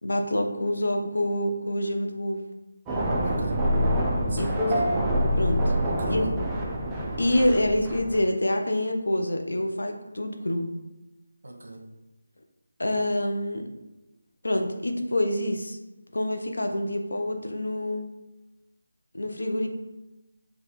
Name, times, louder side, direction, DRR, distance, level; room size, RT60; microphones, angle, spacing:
voice 1, 0.0-2.4 4.4-4.5 5.4-5.7 6.1-6.2 7.2-10.7 12.8-13.7 14.4-15.8 16.1-18.1 19.1-19.7, left 1 dB, 85° left, 4 dB, 0.6 m, -26 dB
sound 1, 2.9-8.2, equal, 10° right, 0.3 m, -26 dB
voice 2, 3.2-3.6 4.3-4.9 5.8-6.3 11.4-11.8, right 1 dB, 70° right, 1 dB, 0.9 m, -37 dB
5.1 x 2.3 x 3.1 m, 0.99 s
figure-of-eight pair, 170°, 0 cm